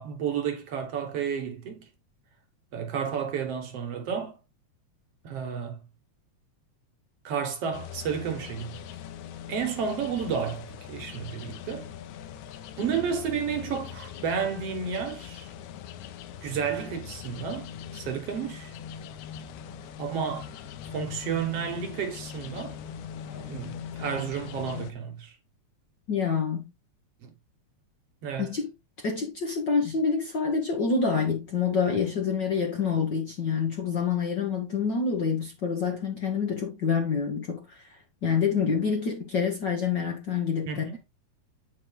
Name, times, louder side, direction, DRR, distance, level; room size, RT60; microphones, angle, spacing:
voice 1, 0.0-1.9 2.7-4.4 5.2-5.8 7.2-8.8 9.5-11.9 12.8-15.5 16.4-18.8 20.0-20.5 20.9-22.7 23.3-25.4 27.2-27.3 28.2-28.5 40.7-41.0, right 7 dB, 60° right, 2.0 m, -31 dB
sound 1, 7.7-24.9, left 9 dB, 90° left, 2.2 m, -41 dB
voice 2, 26.1-26.7 28.4-28.7 29.0-41.0, left 5 dB, 50° left, 1.4 m, -27 dB
8.7 x 4.9 x 3.8 m
omnidirectional pair, 3.4 m